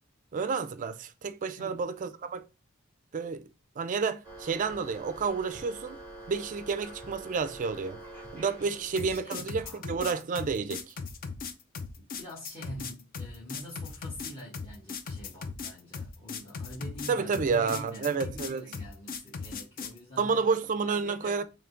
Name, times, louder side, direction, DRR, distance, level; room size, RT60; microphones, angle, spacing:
voice 1, 0.3-2.4 3.1-3.4 3.8-6.0 6.3-8.0 8.3-10.9 17.1-18.7 20.2-21.4, right 5 dB, 40° right, 0.3 m, -30 dB
sound 1, 4.2-9.2, right 1 dB, 5° left, 1.9 m, -46 dB
voice 2, 8.7-9.8 12.0-20.4 20.9-21.4, equal, 25° left, 1.0 m, -45 dB
sound 2, 9.0-20.0, left 5 dB, 45° left, 0.4 m, -38 dB
3.5 x 3.1 x 3.7 m
head